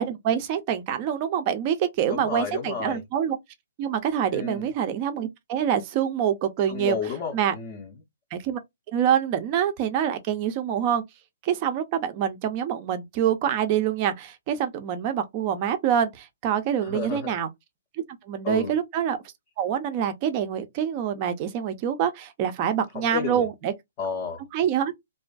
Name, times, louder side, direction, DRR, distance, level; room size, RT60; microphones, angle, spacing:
voice 1, 0.0-3.4 3.8-7.0 7.3-7.5 8.3-8.6 8.9-11.0 11.4-17.5 18.2-19.2 19.6-23.7 24.5-24.9, right 9 dB, 25° right, 0.5 m, -26 dB
voice 2, 2.1-3.0 4.3-4.7 6.7-7.9 16.8-17.3 18.4-18.7 22.9-23.5 24.0-24.4, left 6 dB, 25° left, 0.5 m, -31 dB
2.5 x 2.3 x 2.3 m
hypercardioid pair, 170°, 0 cm